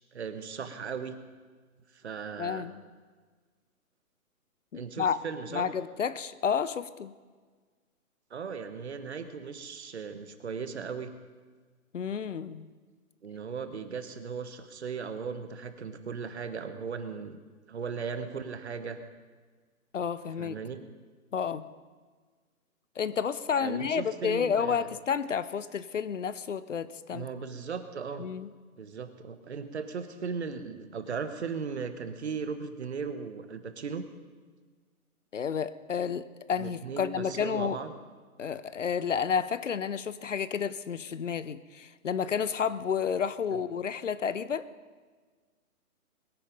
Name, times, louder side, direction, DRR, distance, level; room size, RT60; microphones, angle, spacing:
voice 1, 0.1-1.2 1.9-2.7 4.7-5.7 8.3-11.1 13.2-17.4 17.7-19.0 20.4-20.8 23.6-24.9 27.1-28.3 28.8-34.0 36.6-37.9 43.5-43.6, right 5 dB, 45° right, 9 dB, 1.3 m, -37 dB
voice 2, 2.4-2.7 4.7-5.2 5.5-7.1 11.9-12.7 19.9-20.6 21.3-21.6 23.0-27.3 28.2-28.5 35.3-37.8 38.4-44.7, left 7 dB, 55° left, 16 dB, 0.7 m, -31 dB
21.5 x 10.0 x 5.2 m, 1.5 s
hypercardioid pair, 170°, 44 cm